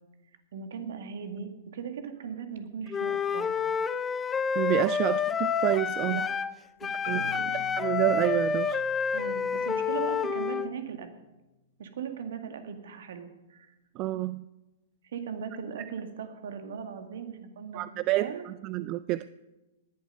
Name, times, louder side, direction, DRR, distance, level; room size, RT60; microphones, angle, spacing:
voice 1, 0.5-4.0 6.0-6.3 6.8-7.6 7.9-8.0 9.1-11.1 11.8-13.7 15.0-18.5, right 6 dB, 65° right, 2.0 m, -39 dB
Wind instrument woodwind instrument, 2.9-6.5 6.8-10.7, left 6 dB, 15° left, 0.6 m, -29 dB
voice 2, 4.6-6.2 7.1-7.2 7.8-8.8 14.0-14.4 17.7-19.2, right 17 dB, 35° right, 0.4 m, -28 dB
Marimba xylophone, 7.0-11.2, left 4 dB, 60° left, 2.0 m, -48 dB
18.5 x 11.0 x 5.5 m
figure-of-eight pair, 105°, 0 cm